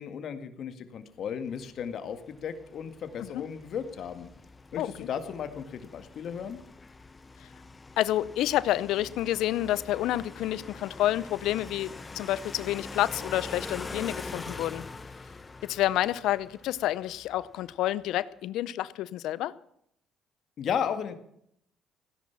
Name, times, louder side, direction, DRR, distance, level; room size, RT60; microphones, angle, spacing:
voice 1, 0.0-4.3 4.7-6.6 20.6-21.2, left 7 dB, 60° left, 9 dB, 1.9 m, -35 dB
sound 1, 1.6-17.8, left 3 dB, 25° left, 1.2 m, -44 dB
voice 2, 8.0-14.8 15.6-19.5, left 14 dB, 75° left, 19 dB, 0.6 m, -29 dB
16.5 x 11.0 x 7.2 m, 0.72 s
supercardioid pair, 75°, 0 cm